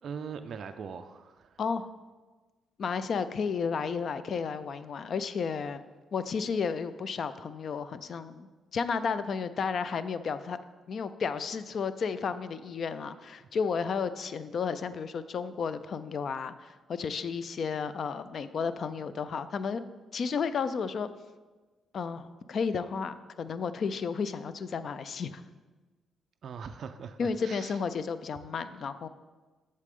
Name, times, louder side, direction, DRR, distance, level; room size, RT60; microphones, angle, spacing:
voice 1, 0.0-1.6 13.4-13.5 26.4-27.8, right 6 dB, 50° right, 7 dB, 0.3 m, -41 dB
voice 2, 2.8-5.8 6.1-10.6 10.9-19.8 20.1-21.1 21.9-25.4 27.2-29.1, left 5 dB, 45° left, 13 dB, 0.3 m, -32 dB
8.2 x 6.6 x 3.6 m, 1.3 s
cardioid pair, 150°, 0 cm